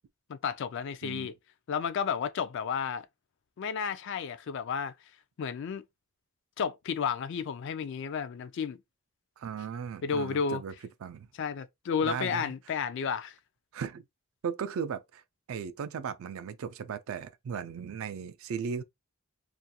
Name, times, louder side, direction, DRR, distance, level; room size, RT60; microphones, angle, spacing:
voice 1, 0.3-1.3 1.7-3.1 3.6-4.9 5.4-5.8 6.6-8.8 10.0-10.6 11.4-13.3, left 6 dB, 55° left, 0.3 m, -32 dB
voice 2, 9.4-10.7 11.0-11.3 12.0-12.5 13.7-14.0 14.4-15.2 15.5-18.8, right 6 dB, 65° right, 0.3 m, -36 dB
2.4 x 2.2 x 2.7 m
head